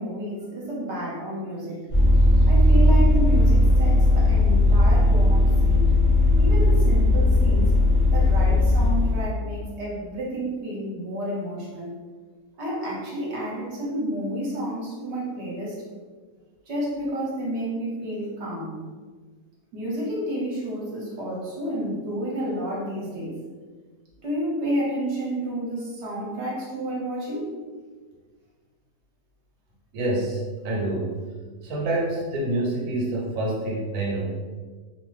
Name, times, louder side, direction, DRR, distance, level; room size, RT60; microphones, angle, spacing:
voice 1, 0.0-1.8 2.3-5.9 6.4-7.8 8.1-12.0 12.6-15.8 16.7-18.8 19.7-23.4 24.2-27.5, equal, 55° right, -5 dB, 0.9 m, -30 dB
Vehicle, 1.9-9.2, left 1 dB, 30° left, 0.5 m, -18 dB
voice 2, 29.9-31.1 31.6-34.2, right 1 dB, 75° right, -4 dB, 1.1 m, -27 dB
2.6 x 2.3 x 3.1 m, 1.4 s
omnidirectional pair, 1.6 m